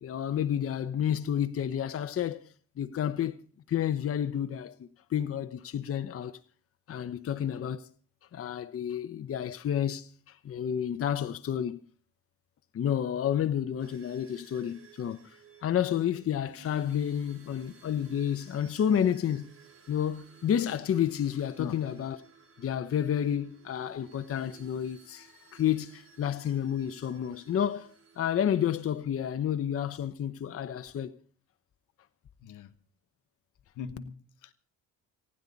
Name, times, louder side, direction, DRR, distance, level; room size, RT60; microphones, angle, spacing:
voice 1, 0.0-2.4 2.8-3.4 3.7-6.4 6.9-7.9 8.3-11.8 12.7-15.4 15.6-19.5 19.9-22.2 22.6-31.2, left 9 dB, 50° left, 0.9 m, -30 dB
sound 1, 13.8-29.4, right 6 dB, 50° right, 4.5 m, -57 dB
voice 2, 32.4-32.7 33.7-34.5, left 6 dB, 80° left, 1.3 m, -41 dB
29.0 x 10.0 x 4.0 m
cardioid pair, 90°, 30 cm